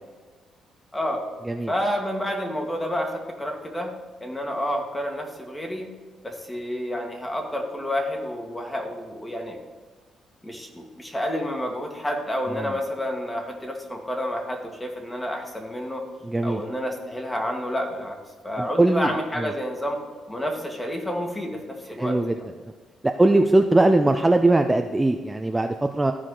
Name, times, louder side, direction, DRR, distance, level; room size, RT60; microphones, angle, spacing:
voice 1, 0.9-1.3 1.7-3.9 4.2-5.9 6.2-9.6 10.4-16.0 16.4-18.2 18.4-20.0 20.3-22.2, equal, 15° left, 2 dB, 1.7 m, -29 dB
voice 2, 16.2-16.6 18.6-19.5 22.0-22.4 23.0-26.1, right 2 dB, 15° right, 5 dB, 0.5 m, -20 dB
14.0 x 4.8 x 3.8 m, 1.4 s
cardioid pair, 90°, 0 cm